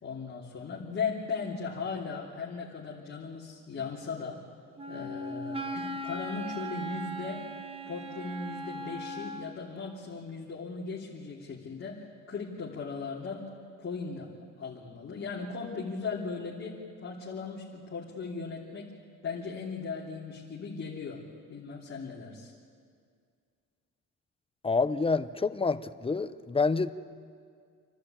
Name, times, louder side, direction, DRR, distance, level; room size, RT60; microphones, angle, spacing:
voice 1, 0.0-4.4 4.9-7.5 7.9-13.5 13.8-14.3 14.6-19.0 19.2-21.2 21.5-22.5, left 5 dB, 40° left, -5 dB, 3.2 m, -37 dB
Wind instrument woodwind instrument, 4.8-9.6, right 1 dB, 20° right, 1.5 m, -38 dB
voice 2, 24.6-26.9, left 4 dB, 20° left, 12 dB, 0.8 m, -27 dB
28.5 x 11.5 x 9.0 m, 2.1 s
cardioid pair, 90°, 30 cm